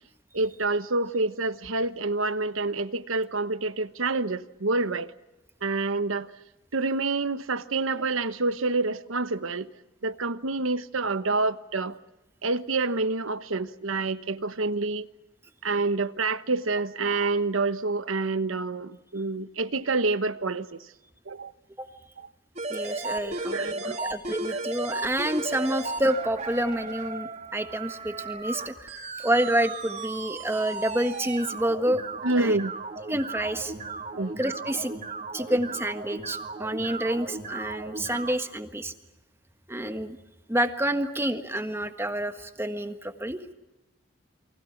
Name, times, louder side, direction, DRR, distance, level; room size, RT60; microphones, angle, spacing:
voice 1, 0.3-5.1 5.6-6.3 6.7-9.7 10.0-12.0 12.4-15.1 15.6-20.9 21.3-21.5 23.1-24.0 24.5-24.6 32.2-32.7 34.1-34.3, right 3 dB, 90° right, 1.2 m, -27 dB
sound 1, 22.6-38.3, right 3 dB, 35° right, 3.2 m, -35 dB
voice 2, 22.7-23.7 24.0-32.0 32.4-32.6 33.1-33.7 34.4-34.9 35.3-38.9 39.7-40.2 40.5-43.4, right 1 dB, 10° right, 1.5 m, -28 dB
29.5 x 24.0 x 5.9 m
head